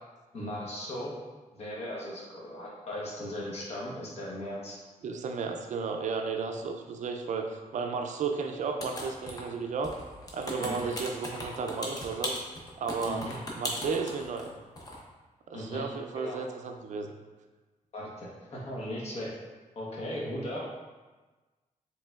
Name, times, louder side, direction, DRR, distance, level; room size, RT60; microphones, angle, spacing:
voice 1, 0.3-1.1 1.5-4.8 10.6-10.9 13.0-13.4 15.5-15.9 16.1-16.4 17.9-19.4 19.8-20.6, left 1 dB, 50° left, -4 dB, 1.0 m, -37 dB
voice 2, 5.0-9.9 10.3-12.3 12.8-13.2 13.5-14.5 15.5-17.1, right 5 dB, 60° right, 4 dB, 0.4 m, -33 dB
sound 1, 8.8-9.6 9.8-14.5 14.8-15.0, left 1 dB, 25° left, 0.6 m, -37 dB
4.9 x 3.3 x 2.3 m, 1.3 s
wide cardioid pair, 165°, 14 cm